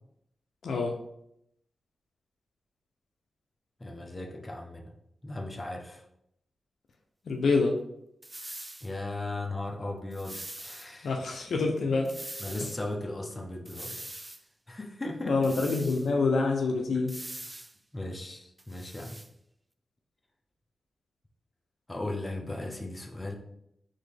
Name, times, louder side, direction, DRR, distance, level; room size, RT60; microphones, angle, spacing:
voice 1, 0.6-1.0 7.3-7.8 11.0-12.1 15.2-17.2, left 3 dB, 75° left, 2 dB, 0.6 m, -26 dB
voice 2, 3.8-4.9 5.2-6.0 8.8-11.1 12.4-14.0 14.7-15.5 16.9-17.1 17.9-19.2 21.9-23.4, left 2 dB, 25° left, 1 dB, 0.9 m, -37 dB
sound 1, 8.2-8.9 10.1-10.9 12.1-12.8 13.7-14.4 15.4-16.1 17.1-17.8 18.6-19.3, right 1 dB, 20° right, 0.4 m, -43 dB
4.0 x 3.6 x 3.4 m, 0.77 s
cardioid pair, 45°, 0 cm